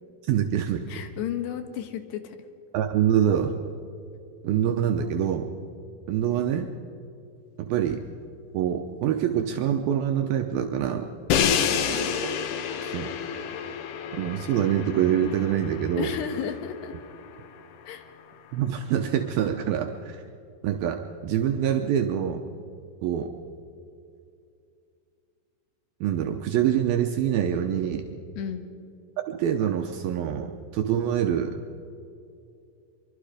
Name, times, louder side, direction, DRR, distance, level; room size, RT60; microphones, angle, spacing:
voice 1, 0.2-0.8 2.7-3.5 4.4-5.5 6.1-6.7 7.6-8.0 8.5-11.1 12.2-12.4 12.8-13.1 14.1-16.1 18.5-20.2 20.6-22.4 23.0-23.3 26.0-28.1 29.3-31.6, right 9 dB, 75° right, 5 dB, 2.5 m, -25 dB
voice 2, 0.9-2.4 11.3-12.1 16.0-16.9 17.9-18.1 28.4-28.7, left 9 dB, 90° left, 8 dB, 3.5 m, -33 dB
Crash cymbal, 11.3-17.3, left 7 dB, 70° left, 2.2 m, -29 dB
24.0 x 23.5 x 5.0 m, 2.5 s
omnidirectional pair, 4.7 m